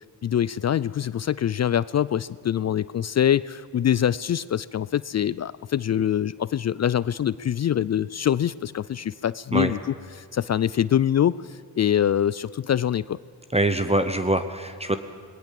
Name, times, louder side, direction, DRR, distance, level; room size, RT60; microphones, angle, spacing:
voice 1, 0.2-13.2, left 10 dB, 45° left, 19 dB, 0.4 m, -24 dB
voice 2, 13.5-15.0, right 1 dB, 15° right, 9 dB, 1.0 m, -23 dB
19.0 x 18.5 x 7.6 m, 2.2 s
cardioid pair, 65°, 40 cm